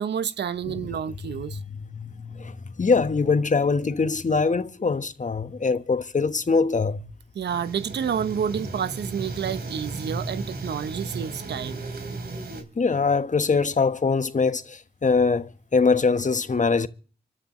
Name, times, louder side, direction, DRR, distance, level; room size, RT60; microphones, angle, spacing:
voice 1, 0.0-1.6 7.3-11.8, right 8 dB, 90° right, 0.8 m, -29 dB
voice 2, 1.2-7.1 12.8-16.9, left 4 dB, 45° left, 1.3 m, -23 dB
sound 1, 7.5-12.6, right 3 dB, 65° right, 3.7 m, -35 dB
26.0 x 12.5 x 3.1 m
cardioid pair, 45°, 17 cm